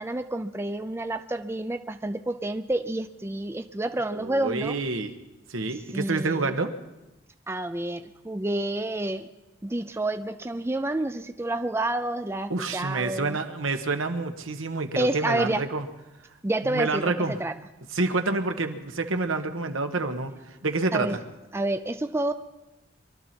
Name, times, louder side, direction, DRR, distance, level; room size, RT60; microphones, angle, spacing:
voice 1, 0.0-4.8 5.9-6.5 7.5-9.3 9.6-13.4 15.0-15.6 16.4-17.5 20.9-21.2 21.5-22.3, right 1 dB, 10° right, 9 dB, 0.4 m, -29 dB
voice 2, 4.1-5.1 5.5-6.7 12.5-15.8 16.7-17.4 17.9-20.3 20.6-21.2, right 3 dB, 80° right, 7 dB, 1.3 m, -28 dB
24.0 x 12.5 x 4.4 m, 0.99 s
head